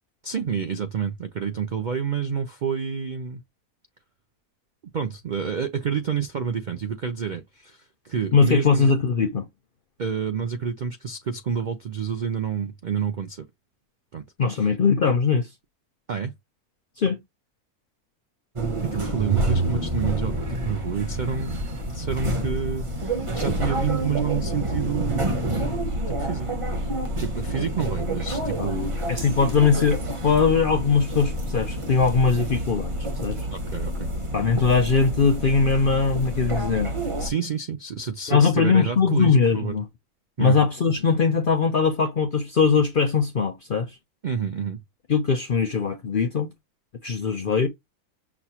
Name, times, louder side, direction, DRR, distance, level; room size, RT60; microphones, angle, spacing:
voice 1, 0.2-3.4 4.9-8.9 10.0-13.5 14.1-14.2 14.5-14.8 16.1-16.3 18.8-21.6 21.9-25.4 26.1-26.5 27.2-28.9 33.5-34.1 37.2-39.8 40.4-40.6 44.2-44.8, right 7 dB, 70° right, 0.4 m, -29 dB
voice 2, 8.3-9.5 14.4-15.5 17.0-17.2 28.6-28.7 29.1-32.9 33.2-33.4 34.3-37.0 38.3-39.9 40.4-43.9 45.1-46.5 47.0-47.7, left 5 dB, 60° left, 0.6 m, -21 dB
sound 1, 18.5-37.3, right 1 dB, 25° right, 0.8 m, -28 dB
6.1 x 2.2 x 2.8 m
omnidirectional pair, 1.6 m